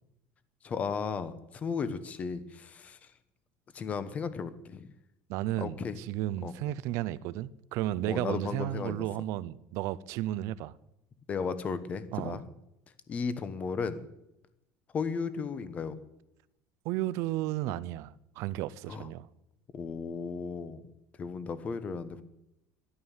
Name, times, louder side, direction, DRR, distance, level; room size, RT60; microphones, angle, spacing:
voice 1, 0.6-3.0 3.7-4.9 5.6-6.0 6.4-6.5 8.1-9.0 11.3-12.4 13.1-14.0 14.9-16.0 18.9-19.1 19.7-20.9 21.2-22.2, left 5 dB, 25° left, 1.0 m, -35 dB
voice 2, 5.3-10.7 12.1-12.4 16.8-19.3, right 14 dB, 55° right, 0.6 m, -33 dB
12.5 x 11.5 x 7.2 m
cardioid pair, 170°, 6 cm